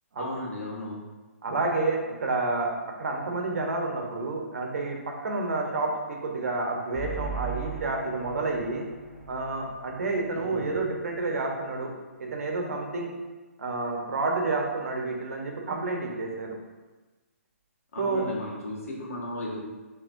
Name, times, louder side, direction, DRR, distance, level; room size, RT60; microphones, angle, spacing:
voice 1, 0.2-1.0 10.5-10.6 17.9-19.6, left 1 dB, 70° left, -3 dB, 1.4 m, -35 dB
voice 2, 1.4-8.8 9.3-11.9 12.2-13.1 13.6-16.6 18.0-18.3, right 3 dB, 70° right, 1 dB, 1.0 m, -29 dB
sound 1, 6.9-10.5, right 4 dB, 25° left, 1.4 m, -39 dB
6.0 x 3.2 x 2.5 m, 1.2 s
hypercardioid pair, 150°, 8 cm